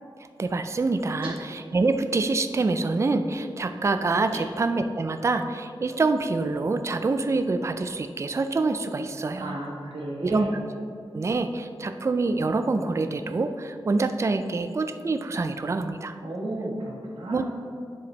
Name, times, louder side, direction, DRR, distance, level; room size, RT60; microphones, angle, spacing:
voice 1, 0.4-9.6 10.2-10.5 11.1-16.2 17.3-17.4, right 3 dB, 35° right, 8 dB, 0.3 m, -26 dB
voice 2, 9.4-10.6 16.2-17.4, right 1 dB, 90° right, -5 dB, 1.7 m, -33 dB
10.0 x 4.9 x 3.2 m, 2.4 s
wide cardioid pair, 105°, 9 cm